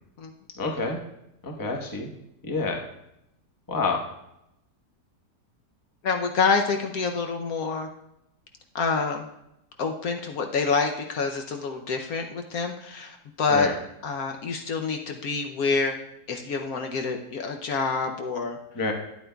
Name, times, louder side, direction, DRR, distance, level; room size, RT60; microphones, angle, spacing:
voice 1, 0.6-1.0 1.4-2.1 2.4-2.8 3.7-4.0 13.5-13.7 18.7-18.9, left 3 dB, 15° left, 1 dB, 0.7 m, -27 dB
voice 2, 6.0-7.9 8.7-9.3 9.8-13.7 14.0-15.9 16.3-18.6, left 4 dB, 65° left, 4 dB, 1.0 m, -27 dB
12.5 x 9.3 x 2.3 m, 0.83 s
omnidirectional pair, 1.8 m